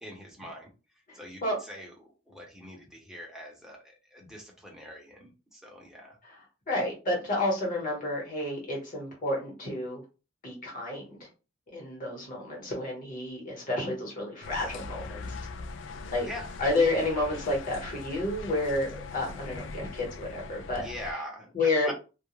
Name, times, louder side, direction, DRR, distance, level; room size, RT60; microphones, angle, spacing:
voice 1, 0.0-0.7 1.1-1.9 2.3-6.2 16.2-16.5 20.8-21.5 21.8-21.9, equal, 5° right, -1 dB, 0.7 m, -43 dB
voice 2, 1.1-1.6 6.2-10.0 10.4-11.3 11.7-15.3 16.1-16.3 16.6-20.8 21.5-21.9, left 2 dB, 45° left, -2 dB, 1.2 m, -30 dB
sound 1, 14.4-21.1, left 3 dB, 90° left, 0.3 m, -41 dB
2.3 x 2.2 x 3.0 m, 0.32 s
head